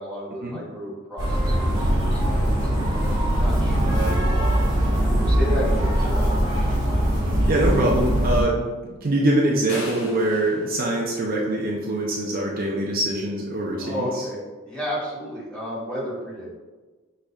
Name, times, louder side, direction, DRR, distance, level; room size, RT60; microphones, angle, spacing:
voice 1, 0.0-2.7 3.3-4.2 5.1-6.8 13.8-16.5, equal, 5° left, -8 dB, 1.4 m, -32 dB
sound 1, 1.2-8.4, equal, 20° right, 1.0 m, -21 dB
voice 2, 7.5-8.7 9.0-14.1, right 1 dB, 45° right, -3 dB, 0.5 m, -23 dB
sound 2, 9.7-11.8, left 1 dB, 75° left, 1.1 m, -37 dB
6.3 x 3.2 x 2.3 m, 1.3 s
head